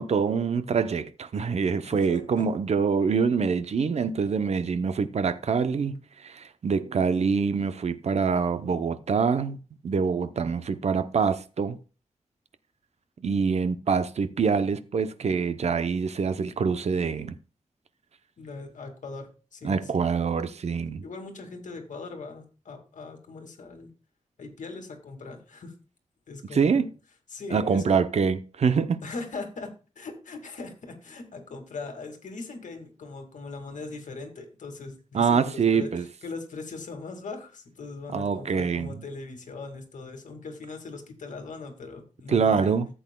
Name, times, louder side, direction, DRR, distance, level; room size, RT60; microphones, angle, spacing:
voice 1, 0.0-9.6 9.8-11.8 13.2-17.4 19.6-21.0 26.5-26.9 27.5-29.0 35.1-36.0 38.1-38.9 42.3-42.9, right 5 dB, 60° right, 0.6 m, -25 dB
voice 2, 1.8-2.4 18.4-20.0 21.0-23.9 24.4-25.7 26.3-26.8 27.3-27.8 29.0-35.9 36.2-42.8, left 3 dB, 80° left, 2.0 m, -40 dB
14.5 x 7.9 x 2.2 m
wide cardioid pair, 150°, 13 cm